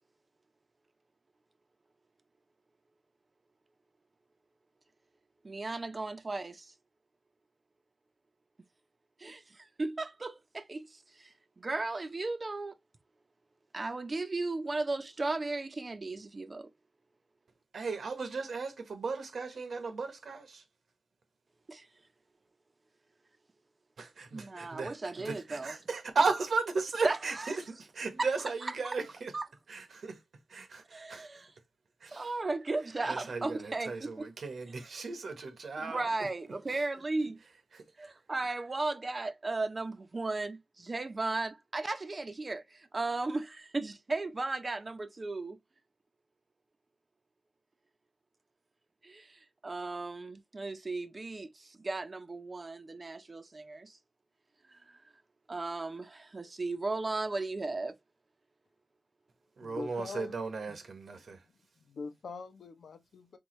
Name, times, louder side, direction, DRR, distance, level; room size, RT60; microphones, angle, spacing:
voice 1, 5.4-6.7 9.2-12.8 13.7-16.7 21.7-21.9 24.3-25.7 27.0-27.4 28.2-28.3 29.3-29.4 30.9-31.5 32.1-34.2 35.8-37.4 38.0-45.6 49.0-54.0 54.7-55.0 55.5-58.0, right 3 dB, 40° right, 0.8 m, -36 dB
voice 2, 17.7-20.6 24.0-29.3 29.7-30.2 30.5-31.4 32.0-32.3 33.1-36.3 36.7-36.8 37.7-38.1 59.6-61.4, right 4 dB, 75° right, 1.3 m, -36 dB
voice 3, 59.6-60.3 61.2-61.3 61.8-63.4, left 4 dB, 85° left, 0.9 m, -43 dB
4.8 x 3.4 x 3.2 m
wide cardioid pair, 80°, 0 cm